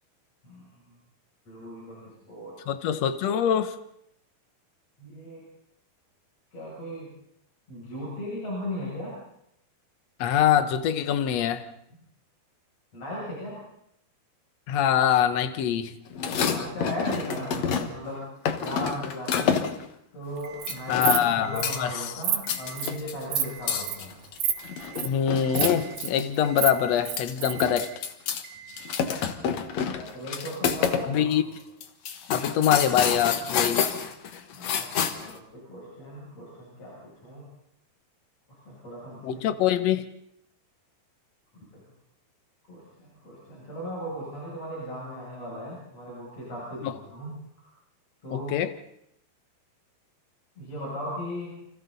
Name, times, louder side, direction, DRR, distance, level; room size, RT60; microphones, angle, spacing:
voice 1, 0.4-1.0 1.5-2.6 5.0-5.4 6.5-7.1 7.7-9.2 12.9-13.6 16.2-18.2 18.6-19.6 20.1-24.1 29.7-31.3 34.5-37.5 38.7-39.4 41.5-41.8 42.7-47.7 48.2-48.5 50.6-51.5, equal, 40° left, -5 dB, 8.4 m, -37 dB
voice 2, 2.7-3.8 10.2-11.6 14.7-15.9 20.9-21.9 25.0-27.9 31.0-31.4 32.3-33.9 39.2-40.0 46.8-46.9 48.3-48.7, left 9 dB, 75° left, 10 dB, 1.5 m, -24 dB
sound 1, 16.1-18.1 18.5-19.9 20.7-21.3 21.6-22.0 22.4-26.3 26.6-26.7 27.0-28.4 28.7-31.1 31.3-31.4 31.8-35.4, left 7 dB, 60° left, 2.0 m, -28 dB
Alarm, 20.4-21.0 21.4-22.0 22.4-23.0 23.4-24.0 24.4-25.0 25.4-26.0 26.4-27.0 27.4-28.0 28.4-29.0, right 10 dB, 55° right, 2.8 m, -47 dB
Insect, 20.4-20.7 21.0-21.2 21.6-21.7 22.0-22.4 22.8-23.0 23.3-23.5 23.8-24.0 24.4-24.5 24.8-25.1 25.5-26.1 26.4-27.7, right 9 dB, 85° right, 3.7 m, -27 dB
29.5 x 27.0 x 4.1 m, 0.74 s
omnidirectional pair, 4.6 m